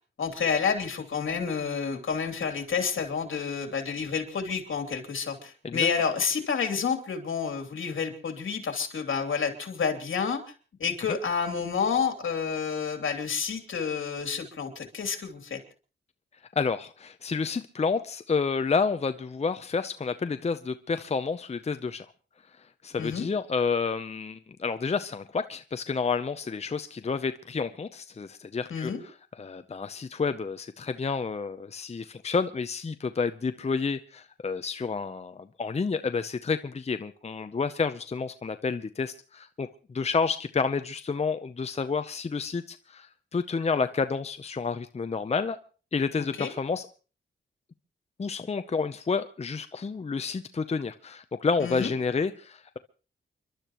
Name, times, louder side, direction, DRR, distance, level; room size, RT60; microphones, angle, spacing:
voice 1, 0.2-10.5 10.8-15.6 23.0-23.3 28.7-29.0 46.2-46.5 51.6-51.9, left 6 dB, 75° left, 5 dB, 2.9 m, -29 dB
voice 2, 16.6-22.1 22.6-45.6 45.9-46.9 48.2-52.8, left 5 dB, 30° left, 10 dB, 0.7 m, -30 dB
29.5 x 12.0 x 3.0 m, 0.36 s
cardioid pair, 85°, 21 cm